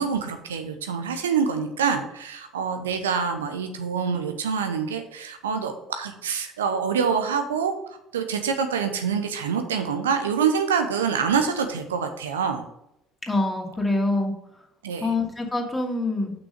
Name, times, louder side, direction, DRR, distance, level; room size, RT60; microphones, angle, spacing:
voice 1, 0.0-7.7 8.1-12.6 14.8-15.1, right 6 dB, 80° right, 7 dB, 0.7 m, -26 dB
voice 2, 13.3-14.3 15.0-16.3, left 2 dB, 15° left, 0 dB, 2.4 m, -25 dB
6.1 x 6.1 x 6.5 m, 0.79 s
figure-of-eight pair, 55°, 0 cm